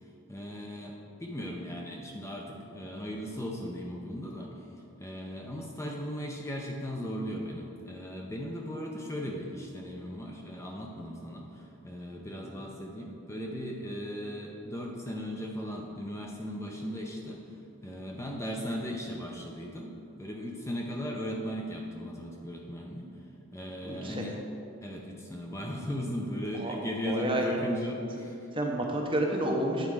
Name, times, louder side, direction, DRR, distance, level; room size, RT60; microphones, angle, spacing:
voice 1, 0.3-4.5 5.0-17.6 17.8-19.9 20.2-23.1 23.5-24.4 24.8-28.5, equal, 15° left, -1 dB, 0.6 m, -37 dB
voice 2, 23.8-24.3 26.6-26.7 27.0-27.6 28.5-29.9, right 1 dB, 25° right, 1 dB, 0.7 m, -30 dB
9.1 x 4.2 x 4.8 m, 2.7 s
head